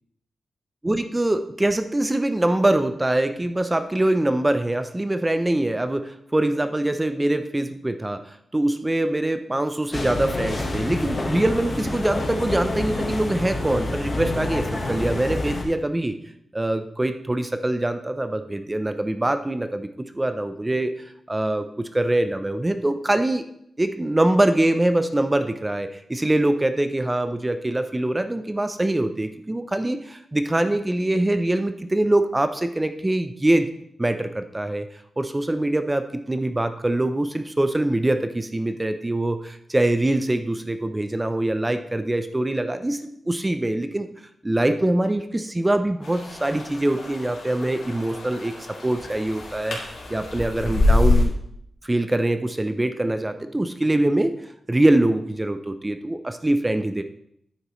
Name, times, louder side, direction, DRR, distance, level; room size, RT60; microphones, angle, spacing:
voice 1, 0.8-16.1 16.5-20.9 21.3-23.4 23.8-33.7 34.0-34.9 35.2-44.1 44.4-51.3 51.8-54.3 54.7-57.0, right 1 dB, 10° right, 9 dB, 0.5 m, -23 dB
sound 1, 9.9-15.6, left 2 dB, 30° left, 1.2 m, -28 dB
sound 2, 46.0-51.2, left 2 dB, 85° left, 2.5 m, -25 dB
9.8 x 8.7 x 3.1 m, 0.73 s
wide cardioid pair, 175°, 0 cm